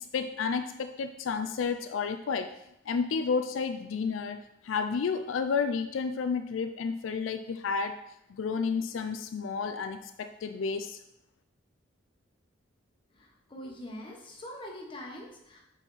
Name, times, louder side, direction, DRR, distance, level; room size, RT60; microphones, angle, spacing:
voice 1, 0.1-2.5 2.9-8.0 8.3-11.0, left 5 dB, 85° left, 9 dB, 0.4 m, -31 dB
voice 2, 13.1-15.6, left 1 dB, 25° left, -1 dB, 1.3 m, -43 dB
7.2 x 4.2 x 4.0 m, 0.82 s
head